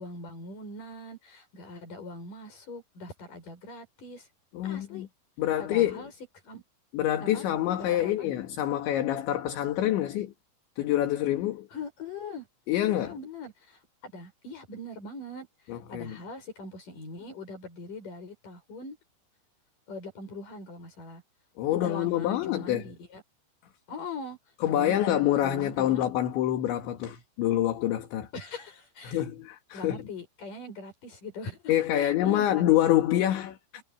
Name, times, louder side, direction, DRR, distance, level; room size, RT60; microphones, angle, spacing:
voice 1, 0.0-4.3 4.6-5.1 5.6-6.1 6.4-6.6 7.2-7.5 7.8-8.3 11.7-12.5 12.9-19.0 19.9-21.2 21.7-23.2 23.9-24.4 24.7-25.2 25.4-26.0 28.3-29.2 29.7-32.6, left 2 dB, 40° left, 9.0 m, -41 dB
voice 2, 4.5-5.1 5.4-6.0 6.9-10.3 10.8-11.7 12.7-13.1 15.7-16.2 21.6-22.9 24.6-28.3 29.0-30.1 31.7-33.8, left 12 dB, 70° left, 4.3 m, -26 dB
omnidirectional pair, 5.7 m